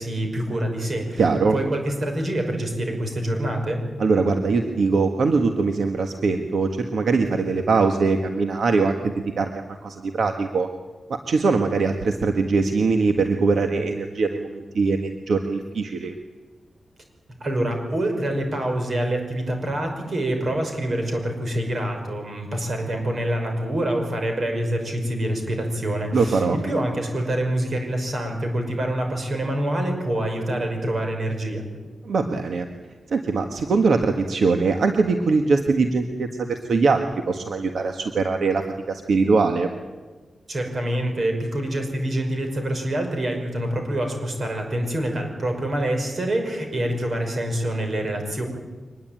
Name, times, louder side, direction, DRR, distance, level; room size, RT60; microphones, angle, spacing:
voice 1, 0.0-3.8 17.4-31.6 40.5-48.4, right 1 dB, 40° right, 3 dB, 5.7 m, -26 dB
voice 2, 1.2-1.6 4.0-10.7 11.1-16.1 26.1-26.6 32.0-32.7 33.1-38.6 38.9-39.7, right 4 dB, 70° right, 5 dB, 1.5 m, -22 dB
24.0 x 20.0 x 9.0 m, 1.3 s
wide cardioid pair, 170°, 0 cm